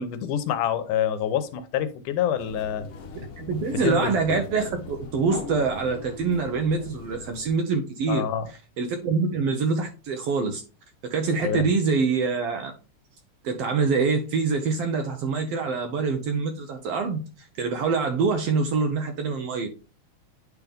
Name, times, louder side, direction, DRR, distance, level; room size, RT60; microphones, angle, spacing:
voice 1, 0.0-2.9 3.8-4.1 8.1-8.5 11.4-11.7, left 9 dB, 80° left, 2.2 m, -26 dB
sound 1, 2.4-7.5, left 4 dB, 60° left, 1.7 m, -38 dB
voice 2, 3.4-8.3 8.8-10.6 11.0-12.7 13.4-19.7, right 4 dB, 80° right, 1.4 m, -25 dB
9.8 x 3.5 x 3.5 m
omnidirectional pair, 3.6 m